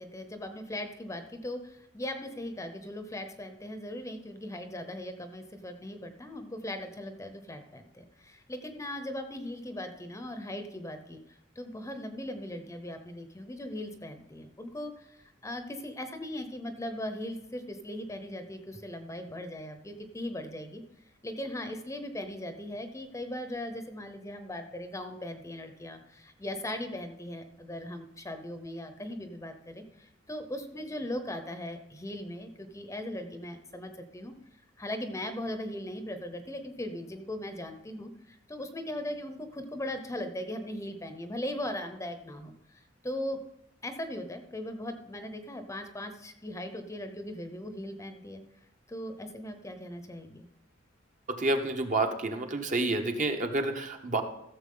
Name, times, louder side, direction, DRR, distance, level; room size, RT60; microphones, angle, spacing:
voice 1, 0.0-11.2 11.6-20.8 21.2-34.3 34.8-43.4 43.8-48.4 48.9-50.5, left 1 dB, 15° left, 7 dB, 0.7 m, -39 dB
voice 2, 51.3-54.2, right 2 dB, 40° right, 5 dB, 0.9 m, -29 dB
15.0 x 7.0 x 3.8 m, 0.80 s
head